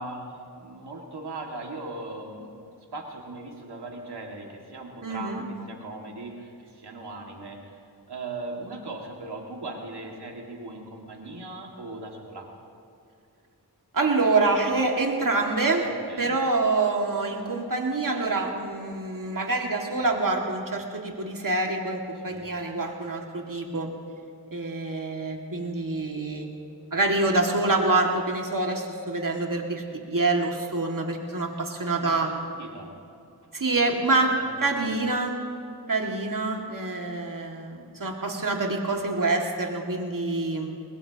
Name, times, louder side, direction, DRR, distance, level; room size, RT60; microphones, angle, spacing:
voice 1, 0.0-2.5 2.9-7.6 8.1-12.5 15.8-16.3 22.3-22.5 32.0-32.9 33.7-33.8 34.4-35.0, right 2 dB, 85° right, 0 dB, 2.2 m, -39 dB
voice 2, 5.0-5.4 13.9-15.9 16.2-23.9 24.5-26.5 26.9-32.3 33.5-35.4 35.9-40.7, right 3 dB, 55° right, 1 dB, 2.3 m, -26 dB
22.0 x 20.5 x 3.0 m, 2.5 s
cardioid pair, 45°, 39 cm